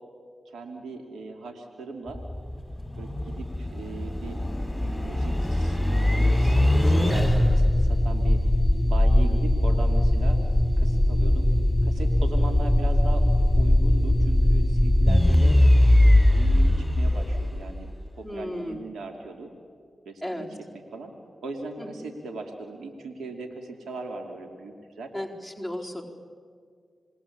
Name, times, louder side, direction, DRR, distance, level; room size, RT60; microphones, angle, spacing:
voice 1, 0.4-2.2 3.0-4.4 4.7-8.4 8.9-10.4 10.8-11.5 11.8-13.3 13.6-15.6 16.3-17.9 18.1-19.5 20.0-20.5 20.9-21.1 21.4-25.1, right 3 dB, 85° right, 4 dB, 2.8 m, -38 dB
sound 1, 2.1-18.1, left 1 dB, 5° left, 6.2 m, -21 dB
voice 2, 18.2-18.9 20.2-20.5 21.8-22.1 25.1-26.0, left 1 dB, 20° right, 0 dB, 4.5 m, -34 dB
27.5 x 21.5 x 8.7 m, 2.1 s
supercardioid pair, 40°, 0 cm